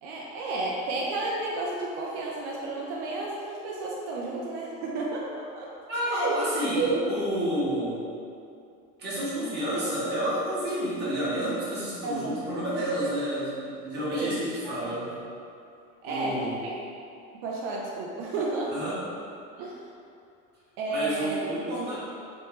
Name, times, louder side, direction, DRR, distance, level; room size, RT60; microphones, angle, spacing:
voice 1, 0.0-5.7 6.1-6.4 6.8-7.1 12.0-12.4 14.1-15.0 16.0-16.7 17.4-18.7 19.6-19.8 20.8-21.4, right 3 dB, 80° right, -3 dB, 0.5 m, -32 dB
voice 2, 5.9-8.1 9.0-15.2 16.0-16.6 18.7-19.0 20.9-22.0, equal, 35° right, -9 dB, 1.3 m, -30 dB
3.2 x 3.1 x 3.0 m, 2.5 s
cardioid pair, 145°, 30 cm